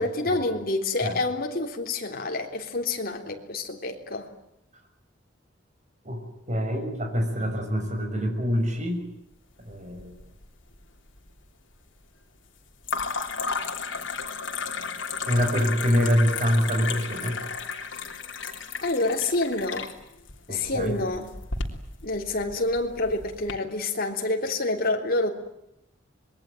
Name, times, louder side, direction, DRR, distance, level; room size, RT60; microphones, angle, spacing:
voice 1, 0.0-4.3 18.8-19.9 20.5-21.3 22.0-25.3, left 2 dB, 50° left, 3 dB, 3.6 m, -28 dB
voice 2, 6.5-9.1 9.6-10.2 15.3-17.4 20.5-21.0, equal, 40° right, 4 dB, 6.6 m, -25 dB
sound 1, 9.7-10.5 10.7-11.4 12.8-23.5, left 5 dB, 75° left, 3.4 m, -34 dB
26.0 x 21.5 x 9.1 m, 0.82 s
head